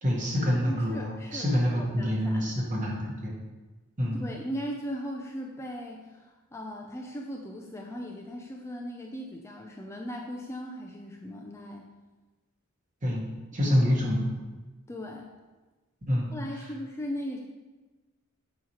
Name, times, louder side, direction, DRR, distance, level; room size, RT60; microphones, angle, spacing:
voice 1, 0.0-3.3 4.0-4.2 13.0-13.2 13.5-14.3 16.1-16.3, equal, 35° right, -3 dB, 1.6 m, -26 dB
voice 2, 0.6-2.4 4.1-11.9 14.9-15.3 16.3-17.4, equal, 15° left, 0 dB, 0.5 m, -38 dB
7.3 x 3.1 x 5.7 m, 1.2 s
head